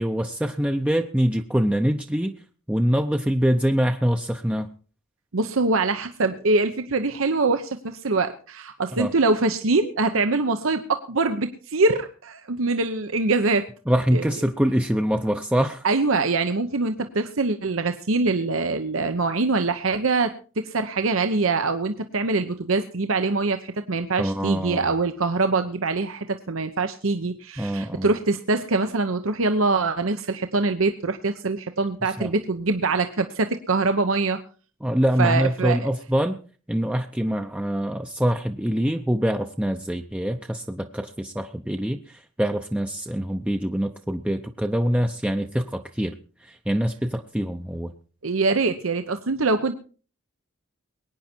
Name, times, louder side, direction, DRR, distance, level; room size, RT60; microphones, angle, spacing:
voice 1, 0.0-2.3 2.7-4.7 9.0-9.1 13.9-15.9 24.2-24.9 27.6-28.1 32.0-32.3 34.8-36.4 36.7-46.1 46.4-47.9, equal, 5° right, 5 dB, 0.6 m, -24 dB
voice 2, 5.3-13.7 14.1-14.3 15.8-34.4 35.2-35.8 48.2-49.7, right 3 dB, 75° right, 8 dB, 0.9 m, -24 dB
22.0 x 9.5 x 4.5 m, 0.39 s
head